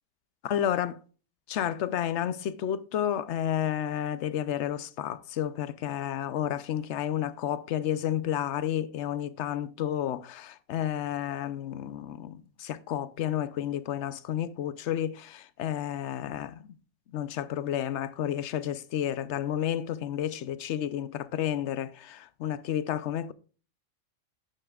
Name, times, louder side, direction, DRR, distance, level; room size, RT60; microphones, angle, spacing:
voice 1, 0.4-1.0 1.5-16.6 17.1-23.3, left 10 dB, 60° left, 0.9 m, -31 dB
12.0 x 9.8 x 2.4 m
omnidirectional pair, 1.4 m